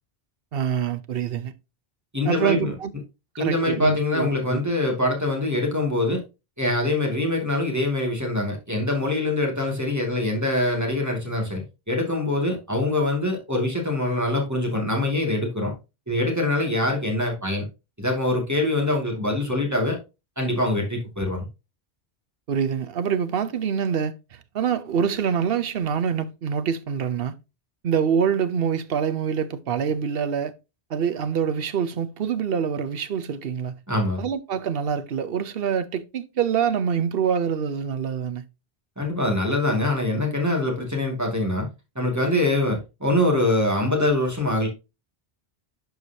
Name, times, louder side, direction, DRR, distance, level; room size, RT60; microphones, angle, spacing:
voice 1, 0.5-1.5 2.2-2.9 3.4-4.6 22.5-27.4 27.8-30.5 30.9-33.8 34.2-38.4, right 7 dB, 65° right, 1.0 m, -25 dB
voice 2, 2.1-2.7 3.4-6.2 6.6-15.7 16.1-17.6 18.0-20.0 20.4-21.4 33.9-34.2 39.0-41.7 42.0-44.7, left 1 dB, 15° right, 2.3 m, -24 dB
11.5 x 4.7 x 2.8 m
omnidirectional pair, 1.1 m